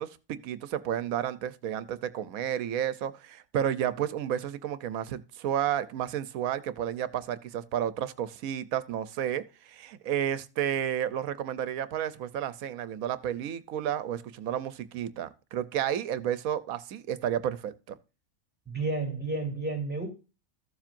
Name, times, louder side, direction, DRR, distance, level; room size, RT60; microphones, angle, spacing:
voice 1, 0.0-18.0, right 10 dB, 75° right, 1.2 m, -31 dB
voice 2, 18.7-20.1, right 3 dB, 5° right, 2.6 m, -31 dB
14.5 x 7.3 x 2.5 m
omnidirectional pair, 1.5 m